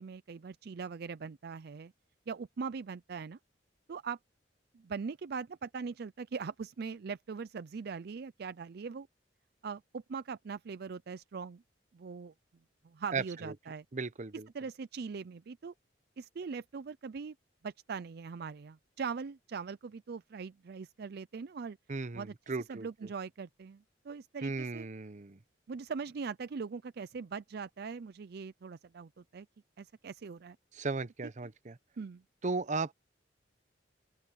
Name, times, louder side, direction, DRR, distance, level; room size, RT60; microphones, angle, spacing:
voice 1, 0.0-1.9 2.3-3.4 3.9-4.2 4.7-9.1 9.6-11.6 11.9-12.3 12.8-13.8 14.5-15.7 16.2-17.3 17.6-21.8 22.1-22.3 22.7-24.9 25.7-29.5 29.8-30.6 32.0-32.2, right 5 dB, 60° right, 0.4 m, -41 dB
voice 2, 13.1-13.5 13.9-14.5 21.9-22.9 24.4-25.4 30.7-31.8 32.4-32.9, right 4 dB, 45° right, 0.8 m, -36 dB
open air
head